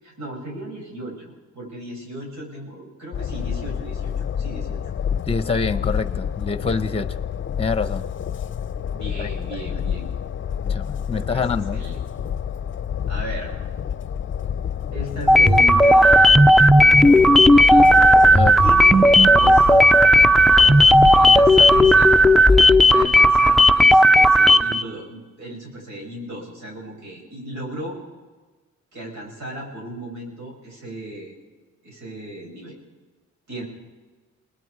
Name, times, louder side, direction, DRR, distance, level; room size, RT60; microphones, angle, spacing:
voice 1, 0.0-4.8 8.8-10.1 11.2-12.0 13.1-13.5 14.9-16.3 16.7-18.0 18.6-19.9 20.5-22.2 22.5-28.0 28.9-31.3 31.8-32.8 33.5-33.6, right 1 dB, 70° right, -1 dB, 7.8 m, -35 dB
Train, 3.1-22.8, left 8 dB, 40° left, 0.7 m, -28 dB
voice 2, 5.3-7.2 7.6-8.1 9.2-9.3 10.7-11.8 18.3-18.6, left 4 dB, 20° left, 13 dB, 1.1 m, -25 dB
sound 1, 15.3-24.8, equal, ahead, 0.6 m, -13 dB
28.0 x 19.5 x 5.0 m, 1.3 s
cardioid pair, 90°, 30 cm